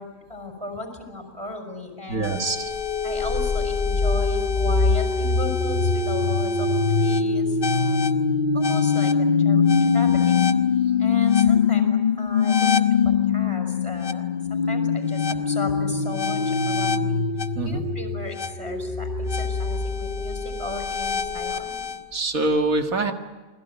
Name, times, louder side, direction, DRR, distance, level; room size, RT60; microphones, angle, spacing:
voice 1, 0.0-2.4 3.0-8.0 8.5-9.6 9.9-10.3 11.0-14.2 14.5-17.2 17.6-21.8, left 2 dB, 20° right, 5 dB, 5.6 m, -36 dB
voice 2, 2.1-2.7 17.5-17.8 22.1-23.1, right 2 dB, 70° right, 6 dB, 2.3 m, -24 dB
sound 1, 2.2-22.0, left 5 dB, 40° left, 1.0 m, -22 dB
28.5 x 21.0 x 9.2 m, 1.3 s
omnidirectional pair, 1.5 m